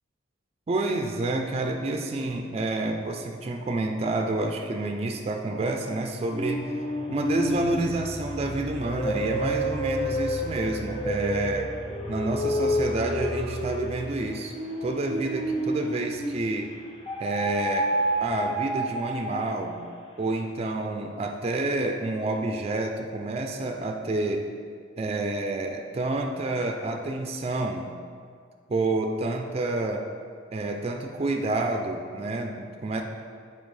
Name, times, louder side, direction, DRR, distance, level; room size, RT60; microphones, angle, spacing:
voice 1, 0.7-11.7 12.1-14.5 14.8-16.7 17.2-17.9 18.2-19.8 20.2-24.5 25.0-27.9 28.7-30.1 30.5-33.0, right 2 dB, 30° right, 3 dB, 0.3 m, -29 dB
sound 1, 6.3-16.5 17.1-19.8, equal, 30° left, 0.7 m, -29 dB
7.1 x 4.6 x 3.2 m, 2.1 s
head